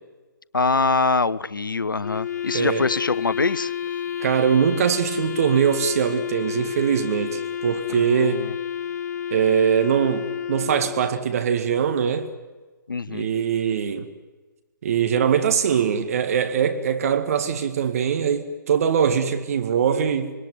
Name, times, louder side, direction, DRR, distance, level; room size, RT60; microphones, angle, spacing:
voice 1, 0.5-3.7 7.9-8.5 12.9-13.3, left 4 dB, 75° left, 19 dB, 0.8 m, -24 dB
Wind instrument woodwind instrument, 2.0-11.3, left 9 dB, 50° left, 1.0 m, -30 dB
voice 2, 2.5-2.8 4.2-8.4 9.3-12.3 13.1-14.1 14.8-20.3, right 7 dB, 45° right, 8 dB, 2.1 m, -22 dB
26.0 x 23.0 x 9.7 m, 1.2 s
figure-of-eight pair, 135°, 11 cm